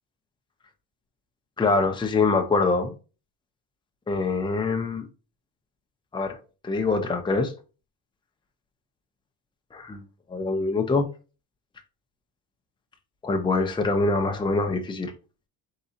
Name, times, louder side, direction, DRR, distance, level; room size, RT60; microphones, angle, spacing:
voice 1, 1.6-2.9 4.1-5.0 6.1-6.4 6.6-7.5 9.7-10.0 10.3-11.0 13.2-15.1, left 3 dB, 10° left, 0.7 m, -24 dB
4.0 x 3.8 x 2.7 m
cardioid pair, 120°, 39 cm